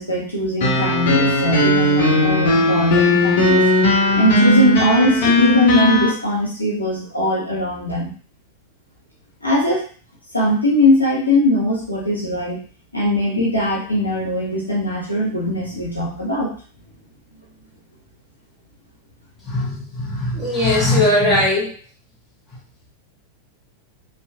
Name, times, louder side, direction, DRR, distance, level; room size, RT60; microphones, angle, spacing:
voice 1, 0.0-3.6 4.1-8.1 9.4-9.8 10.3-12.6 12.9-16.5, left 1 dB, 85° left, -5 dB, 0.8 m, -20 dB
sound 1, 0.6-6.1, left 2 dB, 55° left, 0.7 m, -16 dB
voice 2, 19.4-21.7, left 1 dB, 10° left, -5 dB, 1.2 m, -19 dB
2.7 x 2.4 x 2.5 m, 0.42 s
figure-of-eight pair, 90°, 0 cm